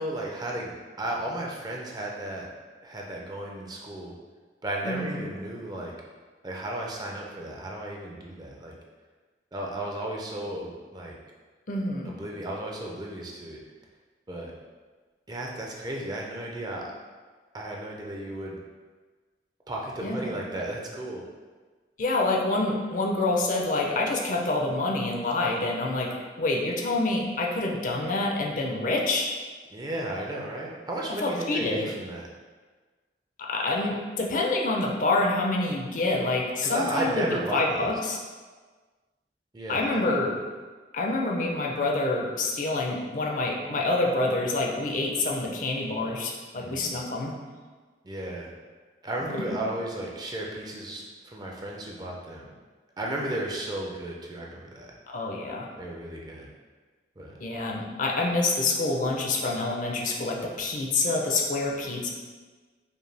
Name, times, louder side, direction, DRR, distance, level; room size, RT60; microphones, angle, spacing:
voice 1, 0.0-2.5 2.8-4.1 4.6-5.9 6.4-8.7 9.5-11.1 12.1-13.6 14.3-14.5 15.3-16.9 17.5-18.6 19.7-21.2 29.7-32.2 36.6-38.1 39.5-40.0 46.6-46.9 48.0-48.5 49.0-52.5 53.0-54.9 55.8-56.5 57.2-57.3, right 1 dB, 25° right, -2 dB, 0.5 m, -34 dB
voice 2, 4.8-5.3 11.7-12.1 20.0-20.4 22.0-29.3 31.2-31.9 33.4-38.2 39.7-40.3 40.9-47.3 55.1-55.7 57.4-62.1, left 2 dB, 45° left, -1 dB, 0.5 m, -27 dB
5.2 x 2.2 x 3.3 m, 1.4 s
head